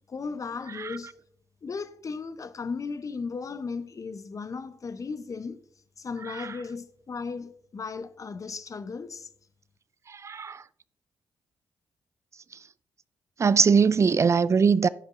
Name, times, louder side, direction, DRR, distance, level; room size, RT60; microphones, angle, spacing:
voice 1, 0.1-1.1 1.6-5.6 6.0-9.3, left 4 dB, 40° left, 0.6 m, -36 dB
voice 2, 10.1-10.6 13.4-14.9, right 5 dB, 35° right, 0.3 m, -21 dB
15.5 x 5.3 x 2.5 m
hypercardioid pair, 40°, 8 cm